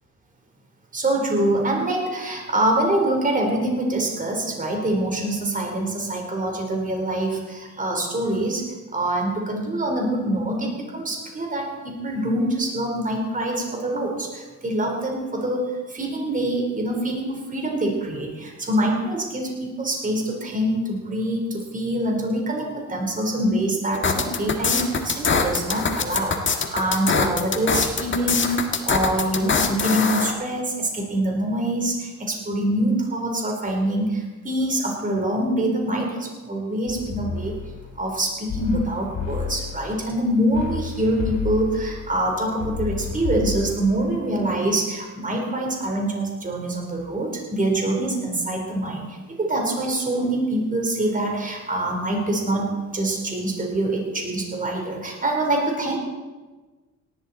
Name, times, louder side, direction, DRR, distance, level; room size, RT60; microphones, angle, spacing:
voice 1, 0.9-37.6 38.0-56.0, right 1 dB, 25° right, 1 dB, 4.0 m, -25 dB
sound 1, 23.9-30.3, left 5 dB, 40° left, 1.7 m, -23 dB
Buzzin Drone, 36.9-38.2 38.5-40.2 40.5-44.5, left 7 dB, 75° left, 3.3 m, -31 dB
18.0 x 12.0 x 4.3 m, 1.3 s
cardioid pair, 90°, 30 cm